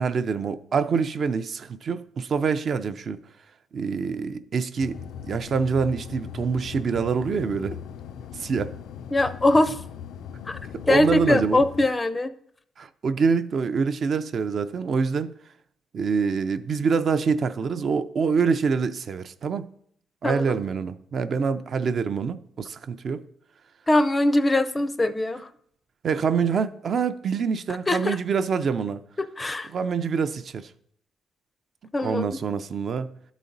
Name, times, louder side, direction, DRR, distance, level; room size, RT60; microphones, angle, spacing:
voice 1, 0.0-3.2 3.7-5.0 5.2-7.7 8.3-8.7 10.9-11.6 12.8-15.3 15.9-19.7 20.2-23.2 26.0-29.0 29.7-30.7 32.0-33.1, right 5 dB, 45° right, 0.4 m, -25 dB
sound 1, 4.8-11.9, left 8 dB, 85° left, 0.3 m, -39 dB
voice 2, 9.1-9.8 10.4-10.6 10.9-12.3 20.2-20.6 23.9-25.5 27.9-28.2 29.2-29.7 31.9-32.3, left 1 dB, 20° left, 0.4 m, -22 dB
12.0 x 4.0 x 3.9 m
cardioid pair, 125°, 0 cm